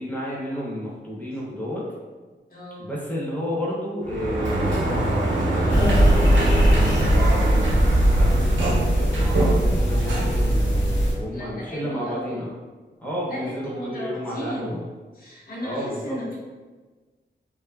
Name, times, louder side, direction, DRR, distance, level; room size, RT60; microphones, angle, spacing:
voice 1, 0.0-1.9 2.8-12.5 13.0-14.8 15.6-16.2, equal, 10° left, -6 dB, 0.5 m, -31 dB
voice 2, 2.5-2.9 11.3-12.4 13.3-14.8 15.1-16.3, equal, 50° left, -6 dB, 0.8 m, -35 dB
Sliding door, 4.0-11.2, right 1 dB, 90° right, 0.5 m, -24 dB
sound 1, 5.7-11.1, equal, 85° left, 0.7 m, -20 dB
2.5 x 2.3 x 2.2 m, 1.3 s
wide cardioid pair, 165°, 19 cm